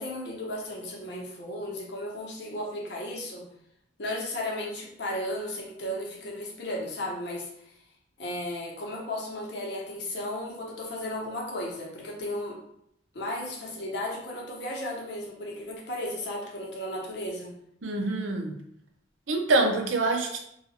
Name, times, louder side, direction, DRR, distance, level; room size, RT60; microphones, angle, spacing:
voice 1, 0.0-3.5 4.0-7.7 8.2-12.6 13.1-17.5, left 1 dB, 60° left, -2 dB, 0.9 m, -35 dB
voice 2, 17.8-18.6 19.3-20.4, right 2 dB, 85° right, 2 dB, 0.6 m, -25 dB
2.8 x 2.3 x 4.2 m, 0.73 s
head